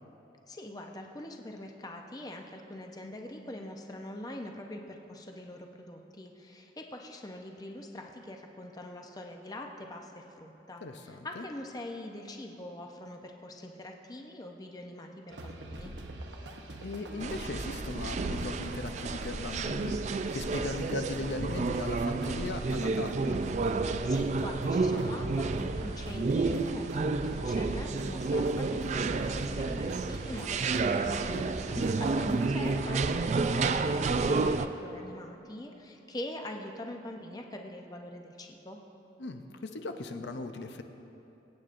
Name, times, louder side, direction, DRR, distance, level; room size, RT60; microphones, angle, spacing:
voice 1, 0.5-15.9 23.8-38.8, left 1 dB, 20° left, 2 dB, 0.6 m, -43 dB
voice 2, 10.8-11.4 16.8-23.4 31.3-31.8 39.2-40.8, left 2 dB, 75° left, 6 dB, 0.6 m, -38 dB
sound 1, 15.3-32.9, right 1 dB, 85° right, 0.9 m, -42 dB
sound 2, 17.2-34.7, right 3 dB, 40° right, 0.3 m, -30 dB
23.0 x 8.8 x 2.5 m, 2.9 s
head